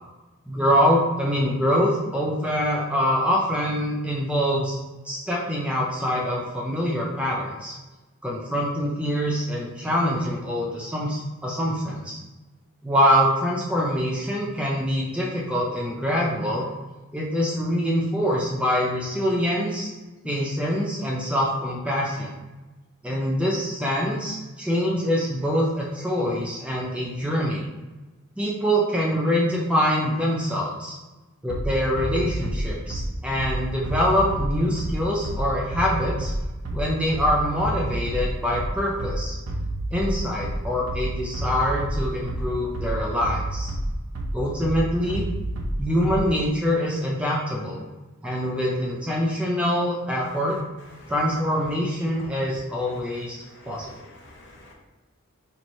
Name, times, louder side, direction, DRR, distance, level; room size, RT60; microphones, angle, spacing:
voice 1, 0.5-4.8 5.0-7.7 8.2-12.2 12.8-16.7 17.1-19.9 20.2-22.3 23.0-27.7 28.4-31.0 31.4-36.3 36.7-39.4 39.9-43.7 44.3-45.2 45.8-47.8 48.2-50.6 51.1-53.9, equal, 5° right, -4 dB, 0.4 m, -24 dB
Bass drum, 31.5-46.5, right 1 dB, 90° right, 0.6 m, -29 dB
voice 2, 53.6-54.7, left 1 dB, 50° left, -1 dB, 0.8 m, -49 dB
3.1 x 2.5 x 4.1 m, 1.2 s
head